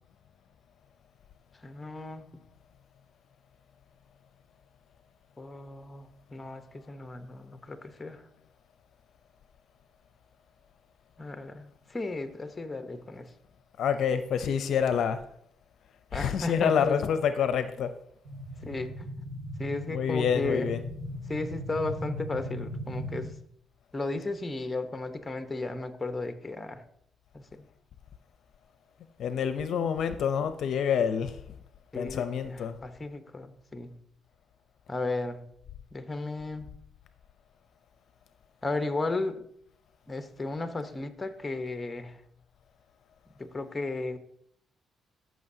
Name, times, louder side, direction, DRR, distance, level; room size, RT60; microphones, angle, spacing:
voice 1, 1.6-2.3 5.4-8.3 11.2-13.3 16.1-17.0 18.6-20.7 21.3-23.3 23.9-26.8 27.3-27.6 31.9-34.0 34.9-35.5 35.9-36.7 38.6-39.4 40.1-42.2 43.4-44.2, left 2 dB, 20° left, 0.9 m, -35 dB
voice 2, 13.8-15.2 16.1-17.9 19.9-20.8 29.2-31.3 31.9-32.8, left 7 dB, 70° left, 0.5 m, -27 dB
sound 1, 18.2-23.3, equal, 70° right, 1.5 m, -38 dB
13.5 x 6.1 x 2.7 m
cardioid pair, 90°, 0 cm